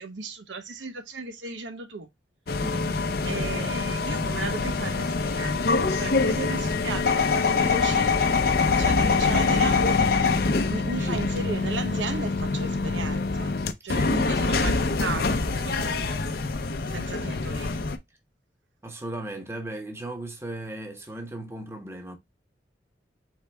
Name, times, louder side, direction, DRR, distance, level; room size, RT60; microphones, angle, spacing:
voice 1, 0.0-2.1 3.2-8.3 8.7-9.9 10.7-13.5 13.8-16.3 16.9-17.7, right 3 dB, 90° right, 0.9 m, -36 dB
sound 1, 2.5-18.0, left 4 dB, 55° left, 0.5 m, -24 dB
voice 2, 2.6-3.1 11.0-11.2 13.9-14.1 18.8-22.2, right 1 dB, 15° right, 0.8 m, -37 dB
4.6 x 3.3 x 3.2 m
head